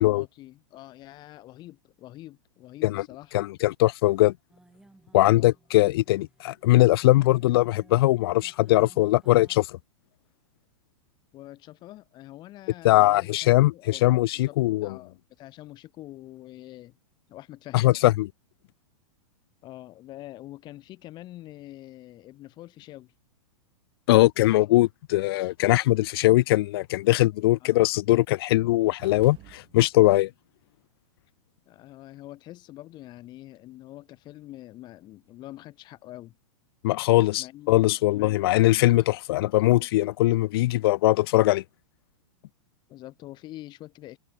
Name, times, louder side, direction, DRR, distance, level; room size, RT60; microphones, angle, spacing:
voice 1, 0.0-3.4 5.1-5.5 11.3-16.9 17.3-17.9 19.6-23.1 27.6-27.8 31.7-36.4 37.4-37.7 38.1-38.5 42.9-44.2, left 15 dB, 25° left, 2.5 m, -45 dB
voice 2, 3.3-4.3 5.1-9.7 12.8-14.9 17.7-18.3 24.1-30.3 36.8-41.6, left 17 dB, 45° left, 0.4 m, -21 dB
sound 1, 4.5-9.6, right 2 dB, 5° right, 3.7 m, -58 dB
sound 2, 29.0-30.2, right 18 dB, 25° right, 2.5 m, -51 dB
supercardioid pair, 160°, 18 cm